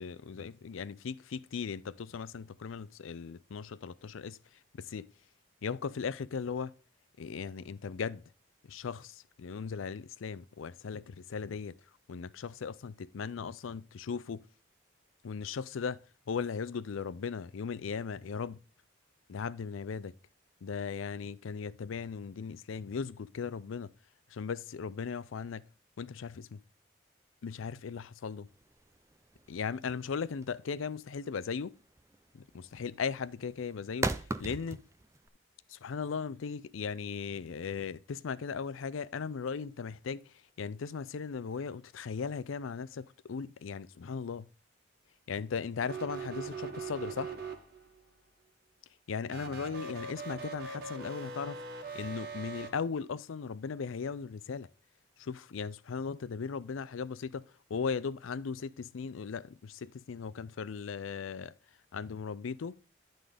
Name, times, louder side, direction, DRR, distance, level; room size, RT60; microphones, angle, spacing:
voice 1, 0.0-4.4 4.7-5.1 5.6-6.7 7.2-8.2 8.7-11.7 12.1-14.4 15.2-16.0 16.3-18.6 19.3-20.1 20.6-23.9 24.3-25.6 26.0-26.6 27.4-28.5 29.5-31.8 32.3-34.8 35.7-40.2 40.6-44.5 45.3-47.3 49.1-51.6 51.9-54.7 55.2-61.5 61.9-62.8, left 5 dB, 85° left, 0.4 m, -37 dB
sound 1, 28.5-35.3, right 2 dB, 15° right, 0.4 m, -38 dB
sound 2, 45.8-48.0 49.2-52.7, right 4 dB, 50° right, 1.6 m, -41 dB
11.5 x 3.9 x 4.9 m
head